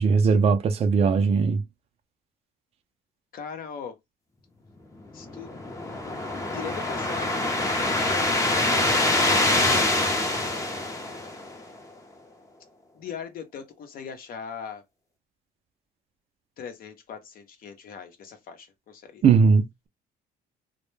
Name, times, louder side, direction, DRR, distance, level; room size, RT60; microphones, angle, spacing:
voice 1, 0.0-1.6 19.2-19.9, right 5 dB, 35° right, 0.4 m, -19 dB
voice 2, 3.3-4.0 5.1-5.5 6.5-8.8 9.6-10.2 10.7-10.9 12.9-14.8 16.6-19.2, left 7 dB, 60° left, 0.7 m, -40 dB
sound 1, 5.2-11.7, left 2 dB, 20° left, 0.6 m, -25 dB
2.1 x 2.1 x 3.2 m
cardioid pair, 110°, 17 cm